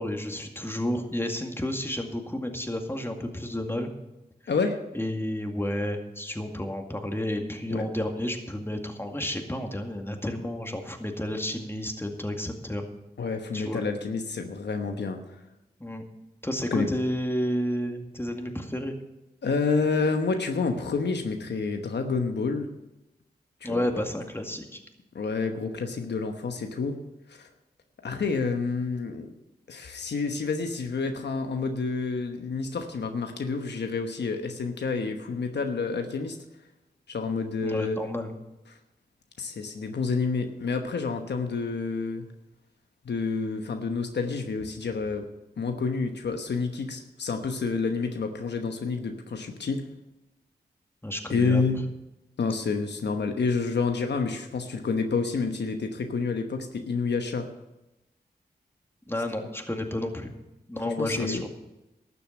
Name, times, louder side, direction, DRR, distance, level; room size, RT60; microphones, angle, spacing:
voice 1, 0.0-3.9 4.9-12.8 13.5-13.8 15.8-16.0 16.4-19.0 23.6-24.8 37.6-38.3 51.0-51.8 59.1-60.3 60.7-61.5, left 1 dB, 15° left, 4 dB, 2.1 m, -31 dB
voice 2, 4.5-4.8 7.7-7.8 13.2-15.2 16.7-16.9 19.4-22.7 23.6-23.9 25.1-27.0 27.3-27.5 28.0-29.3 29.7-36.4 37.1-38.0 39.4-42.2 43.0-45.3 45.6-49.8 51.3-51.8 52.4-57.5 59.4-59.5 60.8-61.4, left 4 dB, 85° left, 5 dB, 1.1 m, -29 dB
12.5 x 7.0 x 8.5 m, 0.96 s
cardioid pair, 40°, 17 cm